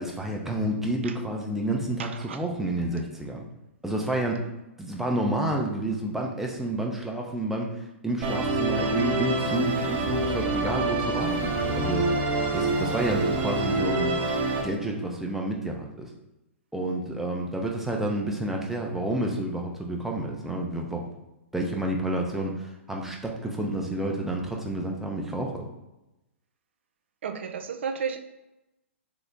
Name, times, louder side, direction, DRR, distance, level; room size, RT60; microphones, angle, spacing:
voice 1, 0.0-3.4 3.8-4.5 4.8-14.2 14.6-16.1 16.7-21.1 21.5-25.6, right 1 dB, 5° right, 0 dB, 0.5 m, -30 dB
voice 2, 2.0-2.4 27.2-28.2, right 6 dB, 65° right, 8 dB, 0.4 m, -32 dB
Musical instrument, 8.2-14.6, right 2 dB, 30° right, 0.9 m, -26 dB
3.8 x 2.1 x 3.6 m, 0.94 s
figure-of-eight pair, 115°, 7 cm